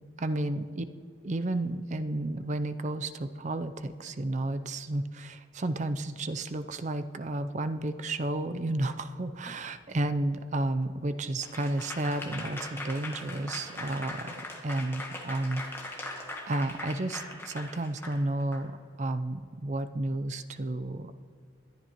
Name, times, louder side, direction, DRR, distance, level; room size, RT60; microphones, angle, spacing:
voice 1, 0.2-0.8 1.2-14.3 14.6-21.2, right 2 dB, 35° right, 11 dB, 0.5 m, -32 dB
Applause / Crowd, 11.4-18.6, left 2 dB, 10° left, 1.2 m, -40 dB
20.5 x 11.0 x 3.0 m, 2.3 s
head